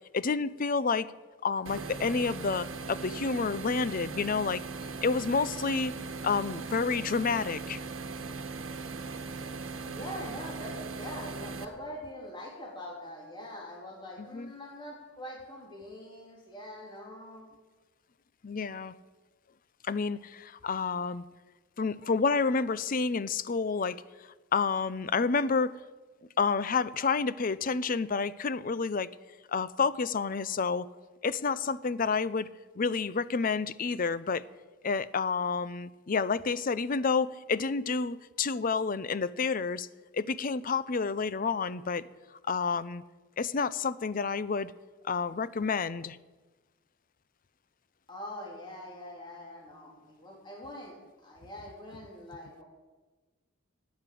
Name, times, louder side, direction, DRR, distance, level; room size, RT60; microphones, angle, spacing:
voice 1, 0.1-1.1 1.4-4.6 5.0-5.9 6.2-7.8 14.3-14.5 18.4-18.9 19.8-21.2 21.8-24.0 24.5-25.8 26.4-29.1 29.5-30.9 31.2-34.4 34.8-39.9 40.1-42.1 42.4-43.0 43.4-44.7 45.0-46.2, left 5 dB, 45° left, 17 dB, 0.5 m, -29 dB
sound 1, 1.6-11.6, right 4 dB, 80° right, 1.2 m, -39 dB
voice 2, 9.9-17.5 48.1-51.0 51.2-52.6, left 1 dB, 25° left, -2 dB, 3.3 m, -43 dB
15.0 x 9.3 x 7.7 m, 1.2 s
head